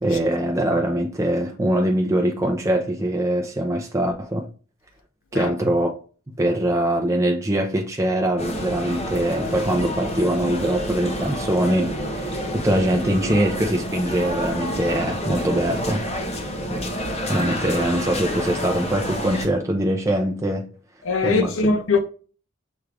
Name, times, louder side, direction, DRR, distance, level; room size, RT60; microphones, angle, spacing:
voice 1, 0.0-4.5 5.3-5.9 6.3-16.0 16.7-16.8 17.3-20.7 21.2-21.5, right 1 dB, 15° right, 0.5 m, -23 dB
sound 1, 8.4-19.5, equal, 30° left, 0.7 m, -29 dB
voice 2, 21.1-22.0, left 4 dB, 70° left, 0.6 m, -21 dB
6.0 x 2.4 x 3.3 m
head